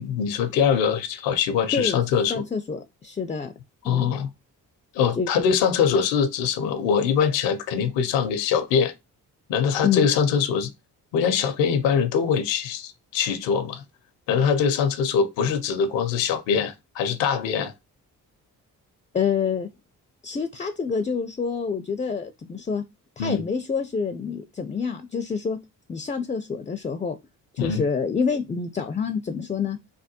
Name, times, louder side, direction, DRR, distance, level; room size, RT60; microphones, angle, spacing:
voice 1, 0.0-2.4 3.8-4.3 4.9-8.9 9.5-10.7 11.1-13.8 14.3-17.7 23.2-23.5 27.6-27.8, left 7 dB, 80° left, 0.6 m, -23 dB
voice 2, 2.3-3.5 3.8-4.1 5.2-5.3 9.8-10.1 19.1-19.7 20.2-22.8 23.2-25.6 25.9-27.2 27.5-29.8, left 6 dB, 20° left, 0.4 m, -27 dB
3.3 x 2.2 x 2.8 m
hypercardioid pair, 45°, 43 cm